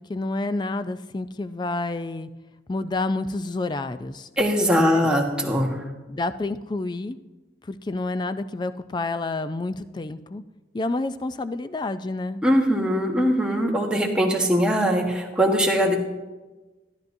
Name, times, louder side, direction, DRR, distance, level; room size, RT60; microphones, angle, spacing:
voice 1, 0.0-2.3 2.7-4.3 4.8-5.1 6.1-7.2 7.6-10.4 10.7-12.4, left 2 dB, 25° left, 12 dB, 0.4 m, -29 dB
voice 2, 4.4-5.8 12.4-16.0, equal, 5° right, 0 dB, 1.2 m, -21 dB
13.0 x 12.0 x 2.7 m, 1.2 s
head